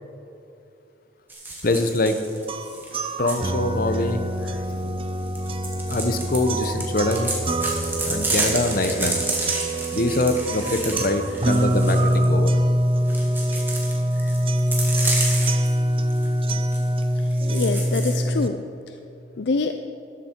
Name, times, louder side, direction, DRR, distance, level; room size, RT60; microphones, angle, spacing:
sound 1, 1.3-3.4 5.3-12.3 13.1-15.7 16.1-16.3 16.6-16.8 17.3-18.1, right 2 dB, 10° right, 1.8 m, -30 dB
voice 1, 1.6-2.2 3.2-4.3 4.7-4.8 5.9-7.4 8.1-9.2 9.9-12.6, left 2 dB, 45° left, 8 dB, 0.8 m, -24 dB
sound 2, 2.5-18.5, equal, 30° right, 0.6 m, -24 dB
voice 2, 17.5-18.6 19.4-19.7, left 4 dB, 65° left, 7 dB, 0.4 m, -25 dB
13.5 x 11.5 x 4.5 m, 2.8 s
head